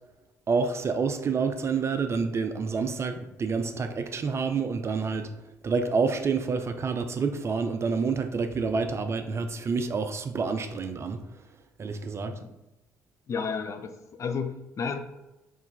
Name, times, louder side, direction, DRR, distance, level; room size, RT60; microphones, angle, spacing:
voice 1, 0.5-5.3 5.6-11.2 11.8-12.4, right 5 dB, 35° right, 7 dB, 0.5 m, -28 dB
voice 2, 13.3-15.0, left 5 dB, 40° left, 7 dB, 0.5 m, -32 dB
4.3 x 3.1 x 3.4 m, 0.97 s
figure-of-eight pair, 45°, 8 cm